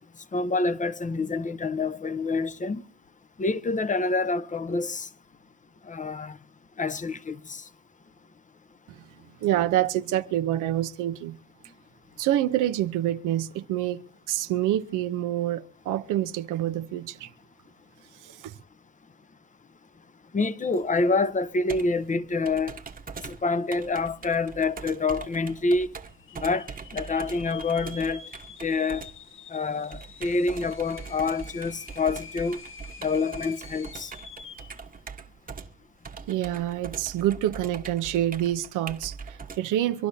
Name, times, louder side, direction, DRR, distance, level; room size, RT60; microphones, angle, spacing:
voice 1, 0.3-2.8 3.4-5.1 5.9-6.4 6.8-7.6 20.3-22.8 23.3-25.9 26.4-26.7 26.9-28.2 28.6-29.1 29.5-32.6 33.0-34.1, left 3 dB, 25° left, 0.8 m, -27 dB
voice 2, 9.4-11.4 12.2-17.3 18.2-18.5 36.3-40.1, right 12 dB, 90° right, 0.8 m, -27 dB
Computer keyboard, 20.7-39.6, right 5 dB, 30° right, 1.2 m, -42 dB
sound 1, 23.9-24.0 24.2-24.8 25.3-25.4 26.1-34.8, left 5 dB, 40° left, 1.4 m, -47 dB
25.0 x 11.5 x 2.7 m
cardioid pair, 90°, 30 cm